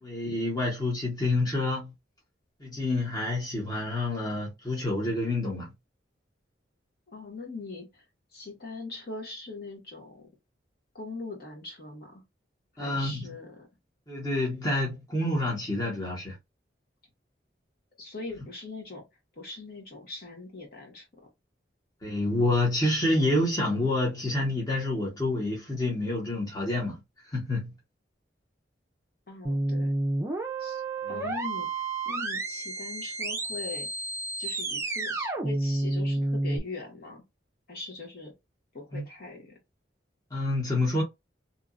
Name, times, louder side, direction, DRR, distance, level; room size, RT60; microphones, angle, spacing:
voice 1, 0.0-1.9 2.6-5.7 12.8-13.2 14.1-16.4 22.0-27.0 27.3-27.7 38.9-39.0 40.3-41.0, left 2 dB, 20° left, 0.9 m, -28 dB
voice 2, 7.1-8.0 8.3-10.3 10.9-12.2 12.8-13.7 18.0-19.0 19.4-21.1 29.3-29.9 30.6-30.8 31.1-33.9 34.4-37.2 37.7-38.3 38.7-39.6, left 3 dB, 55° left, 1.2 m, -41 dB
sound 1, 29.4-36.6, right 2 dB, 15° right, 0.4 m, -30 dB
2.8 x 2.4 x 2.4 m
head